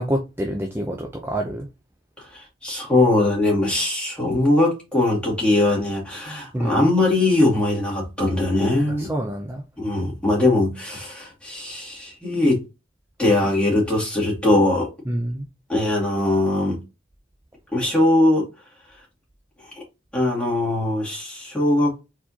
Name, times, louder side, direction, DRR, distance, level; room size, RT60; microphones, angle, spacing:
voice 1, 0.0-1.7 6.5-6.8 8.9-9.6 15.1-15.4, right 1 dB, 10° right, 0.6 m, -27 dB
voice 2, 2.2-9.1 9.8-12.6 13.2-14.9 15.7-16.8 17.7-18.5 19.7-19.8 20.1-21.9, left 2 dB, 5° left, 2.3 m, -21 dB
4.6 x 4.1 x 2.8 m
head